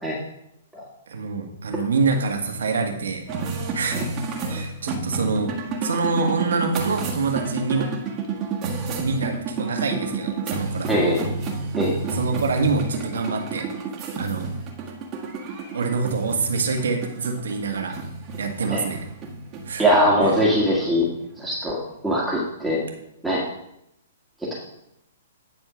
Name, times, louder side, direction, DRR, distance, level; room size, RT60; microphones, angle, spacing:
voice 1, 1.1-3.3 3.7-4.0 4.5-5.5 5.8-7.9 9.0-11.1 12.1-13.7 14.2-14.5 15.7-18.0 18.4-19.0 19.7-19.9 20.2-20.4, right 4 dB, 70° right, 3 dB, 1.7 m, -25 dB
sound 1, 3.3-21.9, right 4 dB, 30° right, 1.6 m, -31 dB
voice 2, 10.9-11.2 11.7-11.9 18.7-18.8 19.8-21.1 21.4-21.8 22.0-22.8 23.2-23.4, equal, 5° right, -6 dB, 1.9 m, -21 dB
9.9 x 4.4 x 6.1 m, 0.80 s
hypercardioid pair, 120°, 0 cm